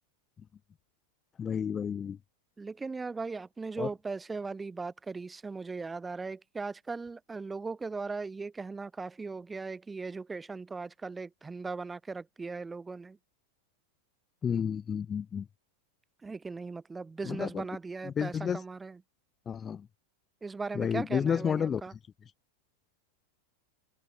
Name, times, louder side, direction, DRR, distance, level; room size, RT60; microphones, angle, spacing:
voice 1, 1.4-2.2 3.8-3.9 14.4-15.5 17.3-17.6 18.1-18.6 19.5-19.9 20.7-21.8, left 7 dB, 20° left, 0.4 m, -31 dB
voice 2, 2.6-13.2 16.2-19.0 20.4-21.9, right 4 dB, 10° right, 1.1 m, -38 dB
figure-of-eight pair, 90°, 0 cm